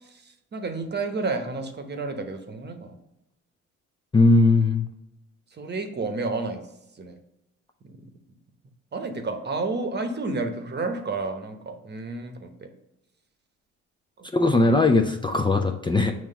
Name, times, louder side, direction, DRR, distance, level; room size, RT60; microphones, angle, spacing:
voice 1, 0.0-3.0 5.5-6.6 7.0-7.2 7.8-8.0 8.9-12.7 14.2-14.3 14.6-14.8, right 3 dB, 35° right, 6 dB, 1.0 m, -31 dB
voice 2, 4.1-4.9 14.3-16.1, left 3 dB, 15° left, 3 dB, 0.5 m, -19 dB
7.3 x 3.0 x 5.6 m, 0.86 s
cardioid pair, 90°, 30 cm